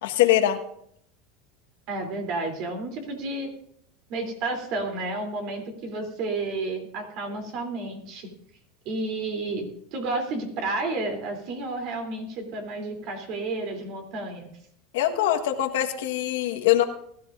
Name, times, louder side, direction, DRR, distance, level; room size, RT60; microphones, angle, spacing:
voice 1, 0.0-0.6 14.9-16.8, left 13 dB, 85° left, 6 dB, 1.4 m, -22 dB
voice 2, 1.9-3.5 4.1-8.3 8.8-14.5, right 2 dB, 55° right, 4 dB, 3.2 m, -31 dB
20.5 x 13.5 x 2.6 m, 0.70 s
supercardioid pair, 135°, 0 cm